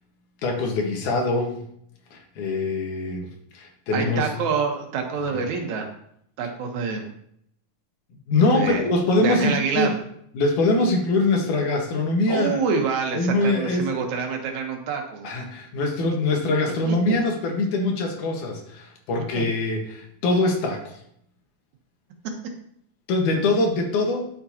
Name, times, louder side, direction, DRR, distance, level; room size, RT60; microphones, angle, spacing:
voice 1, 0.4-1.6 2.1-4.3 8.3-9.9 10.3-12.6 13.1-14.0 15.2-21.0 23.1-24.3, left 2 dB, 90° left, 1 dB, 2.9 m, -23 dB
voice 2, 3.9-5.9 6.4-7.1 8.5-8.8 9.2-9.9 12.3-15.3 16.8-17.2 19.3-19.4, right 5 dB, 75° right, 3 dB, 2.4 m, -26 dB
11.5 x 6.7 x 2.8 m, 0.70 s
omnidirectional pair, 3.4 m